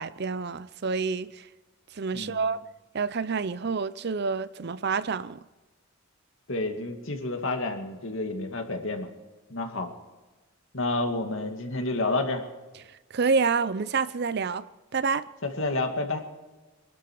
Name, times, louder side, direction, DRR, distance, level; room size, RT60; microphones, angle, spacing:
voice 1, 0.0-1.4 2.0-2.6 2.9-5.4 13.1-14.6 14.9-15.3, right 5 dB, 50° right, 0.5 m, -28 dB
voice 2, 2.1-2.5 6.5-9.1 9.5-9.9 10.7-12.4 15.4-16.2, left 2 dB, 65° left, 2.3 m, -29 dB
24.0 x 12.5 x 4.7 m
head